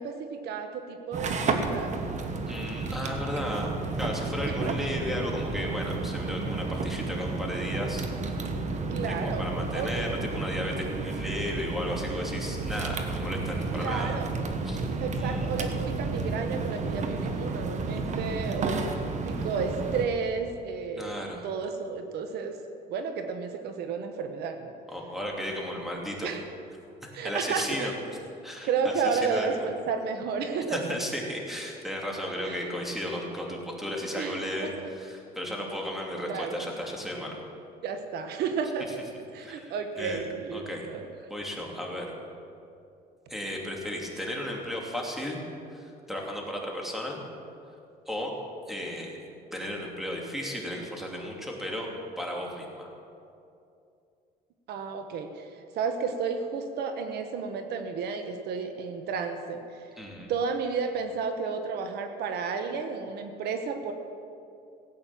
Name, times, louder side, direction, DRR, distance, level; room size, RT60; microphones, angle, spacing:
voice 1, 0.0-1.9 4.4-4.7 8.9-9.5 9.7-10.2 13.7-14.3 15.0-19.0 19.2-22.6 22.9-24.7 26.2-26.4 27.1-27.9 28.6-30.8 32.4-32.7 34.2-34.7 36.2-36.7 37.8-39.0 39.3-41.1 54.7-59.9 60.3-63.9, right 5 dB, 75° right, 7 dB, 1.2 m, -32 dB
sound 1, 1.1-20.1, right 3 dB, 45° right, 1.4 m, -31 dB
voice 2, 2.5-3.7 4.0-8.4 9.0-14.1 14.6-14.9 15.2-15.5 21.0-21.4 24.9-26.3 27.0-27.9 28.4-28.7 29.0-29.7 30.7-37.4 39.4-40.2 40.5-40.9 41.3-42.1 43.3-45.4 45.7-47.2 48.1-48.3 48.7-49.2 49.5-51.9 52.2-52.9 60.0-60.3, left 1 dB, ahead, -1 dB, 2.8 m, -34 dB
16.5 x 8.8 x 7.4 m, 2.6 s
cardioid pair, 110°, 17 cm